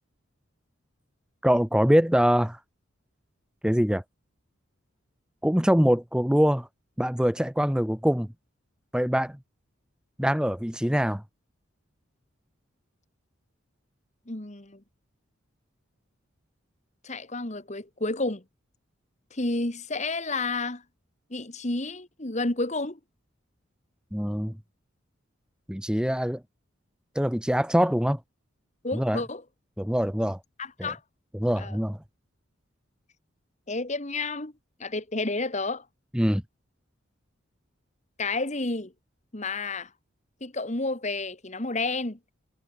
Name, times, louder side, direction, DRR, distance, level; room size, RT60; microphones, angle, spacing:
voice 1, 1.4-2.6 3.6-4.0 5.4-6.7 7.0-8.3 8.9-9.4 10.2-11.2 24.1-24.5 25.7-26.4 27.1-28.2 28.9-29.2 29.8-30.4 30.8-30.9 31.3-32.0 36.1-36.4, equal, 5° right, 1.0 m, -23 dB
voice 2, 14.3-14.8 17.0-18.4 19.3-20.8 21.3-23.0 28.8-29.4 30.6-31.0 31.6-31.8 33.7-34.5 34.8-35.8 38.2-38.9 39.3-39.9 40.4-42.2, left 3 dB, 35° left, 1.8 m, -30 dB
head